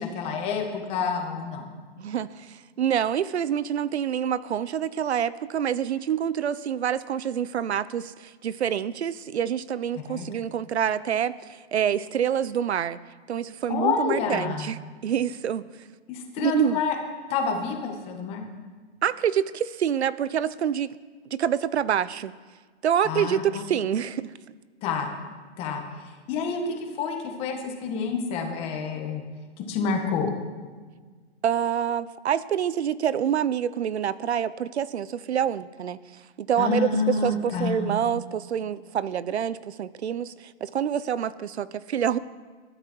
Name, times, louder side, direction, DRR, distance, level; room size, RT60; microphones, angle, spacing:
voice 1, 0.0-1.7 10.1-10.3 13.7-14.7 16.1-17.0 17.3-18.5 23.0-23.4 24.8-25.1 25.6-25.8 26.3-29.2 29.7-30.3 36.6-37.9, left 5 dB, 15° left, 3 dB, 1.8 m, -28 dB
voice 2, 2.0-13.0 13.3-14.8 15.0-15.6 16.4-16.8 19.0-21.0 21.3-22.3 22.8-24.3 31.4-36.0 36.4-42.2, right 9 dB, 75° right, 17 dB, 0.8 m, -27 dB
20.5 x 13.0 x 4.7 m, 1.5 s
hypercardioid pair, 165°, 33 cm